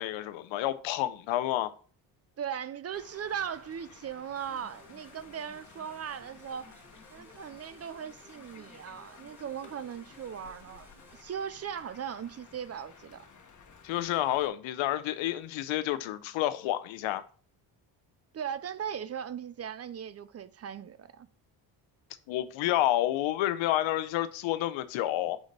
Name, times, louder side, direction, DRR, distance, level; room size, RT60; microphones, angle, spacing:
voice 1, 0.0-1.7 13.8-17.2 22.3-25.4, left 14 dB, 85° left, 0.7 m, -29 dB
voice 2, 2.4-6.8 7.1-13.2 18.3-21.3, right 8 dB, 35° right, 0.4 m, -38 dB
sound 1, 2.9-14.5, left 5 dB, 40° left, 1.2 m, -55 dB
sound 2, 4.4-11.2, left 1 dB, 5° right, 1.6 m, -58 dB
4.9 x 3.9 x 5.2 m
cardioid pair, 90°, 45 cm